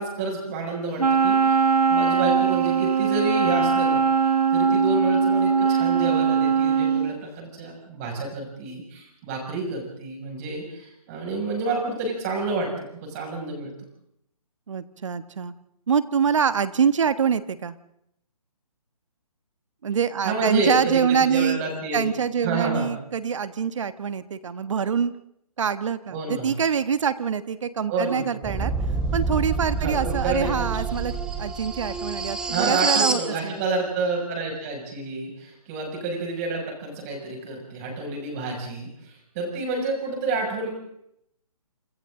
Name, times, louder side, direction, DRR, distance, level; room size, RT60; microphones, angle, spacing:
voice 1, 0.0-13.7 20.2-22.1 22.4-22.9 26.1-26.6 27.9-28.3 29.8-30.8 32.5-40.7, right 3 dB, 25° right, 1 dB, 6.5 m, -29 dB
Wind instrument woodwind instrument, 1.0-7.1, right 6 dB, 85° right, 2.2 m, -21 dB
voice 2, 14.7-15.5 15.9-17.8 19.8-21.6 21.9-25.1 25.6-28.7 29.1-33.6, right 7 dB, 55° right, 13 dB, 1.4 m, -25 dB
sound 1, 28.4-33.3, right 4 dB, 5° right, 1.1 m, -27 dB
27.0 x 27.0 x 3.9 m, 0.75 s
hypercardioid pair, 160°, 19 cm